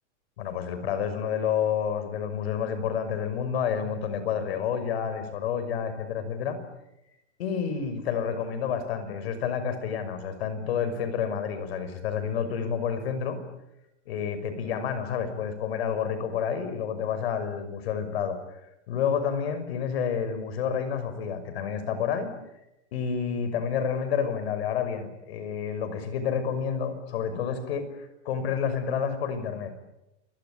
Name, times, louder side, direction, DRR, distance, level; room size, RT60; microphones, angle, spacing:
voice 1, 0.4-6.6 7.4-13.4 14.1-18.4 18.9-22.3 22.9-29.7, left 7 dB, 55° left, 11 dB, 6.0 m, -29 dB
28.0 x 23.5 x 8.8 m, 0.89 s
supercardioid pair, 165°, 36 cm